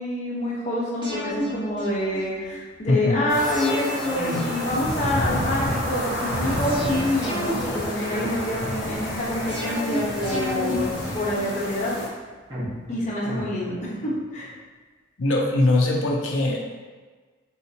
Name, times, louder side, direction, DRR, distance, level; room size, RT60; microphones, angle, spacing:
voice 1, 0.0-10.9 11.1-11.9 12.9-14.5, left 1 dB, 40° left, -6 dB, 0.9 m, -27 dB
sound 1, 1.0-2.6 3.4-5.5 6.4-8.6 9.5-11.8 12.5-14.2 14.5-14.6, equal, 25° right, 1.1 m, -33 dB
voice 2, 2.9-3.2 15.2-16.6, left 2 dB, 85° left, 0 dB, 0.5 m, -21 dB
sound 2, 3.3-12.1, left 1 dB, 65° left, 0.9 m, -29 dB
3.8 x 2.8 x 2.8 m, 1.4 s
head